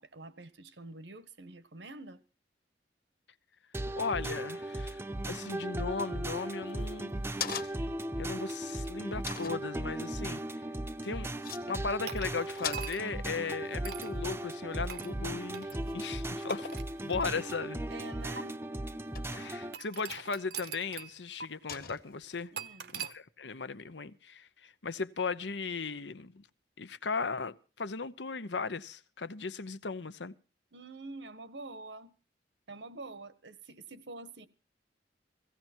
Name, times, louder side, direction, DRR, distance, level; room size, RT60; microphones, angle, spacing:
voice 1, 0.0-2.2 17.9-18.6 22.5-22.9 30.7-32.1 32.7-34.5, right 2 dB, 85° right, 1.5 m, -46 dB
sound 1, 3.7-19.8, right 1 dB, 15° right, 0.7 m, -37 dB
voice 2, 3.9-5.0 5.3-7.7 8.2-10.4 11.0-11.3 11.7-16.7 17.0-17.8 19.3-22.5 22.9-26.4 26.8-30.3, left 4 dB, 85° left, 1.0 m, -37 dB
sound 2, 6.7-8.0 8.5-8.6 9.3-9.6 11.1-11.2 11.4-11.6 11.9-12.2 12.4-15.3 15.6-16.0 16.5-17.1 17.8-18.3 19.1-19.6 20.2-20.3 21.7-22.4, left 6 dB, 55° left, 1.7 m, -41 dB
sound 3, 12.1-13.2 13.8-14.2 14.9-15.1 15.5-15.7 16.5-17.6 18.4-18.5 19.7-21.1 21.4-21.5 22.6-23.2, right 7 dB, 65° right, 0.9 m, -42 dB
16.5 x 16.5 x 4.5 m
head